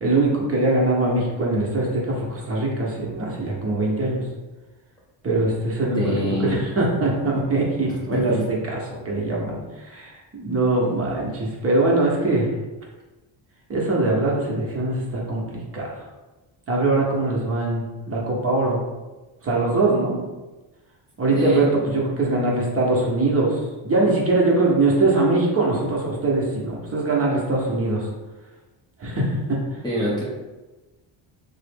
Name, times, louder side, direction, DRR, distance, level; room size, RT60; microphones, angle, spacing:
voice 1, 0.0-4.2 5.2-6.1 6.4-8.4 8.7-12.5 13.7-16.1 16.7-18.8 19.4-20.2 21.2-28.1 29.0-29.6, right 2 dB, 30° right, -3 dB, 0.7 m, -22 dB
voice 2, 6.0-6.6 8.1-8.4 21.3-22.0 29.8-30.2, equal, 10° left, -8 dB, 0.4 m, -25 dB
3.6 x 2.0 x 3.4 m, 1.2 s
cardioid pair, 145°, 49 cm